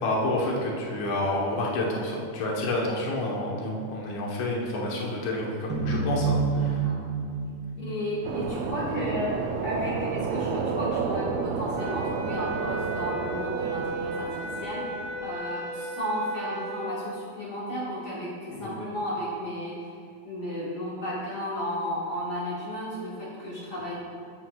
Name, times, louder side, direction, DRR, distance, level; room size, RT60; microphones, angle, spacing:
voice 1, 0.0-6.8 18.6-18.7, left 1 dB, 70° left, -3 dB, 2.5 m, -29 dB
sound 1, 5.7-8.9, right 4 dB, 50° right, 1.4 m, -28 dB
voice 2, 6.6-7.0 7.8-20.0 20.2-23.9, equal, 50° left, -7 dB, 1.3 m, -33 dB
sound 2, 8.2-15.3, right 5 dB, 85° right, 1.5 m, -31 dB
sound 3, 11.8-16.9, right 2 dB, 70° right, 2.1 m, -35 dB
10.5 x 8.0 x 2.3 m, 2.3 s
omnidirectional pair, 3.7 m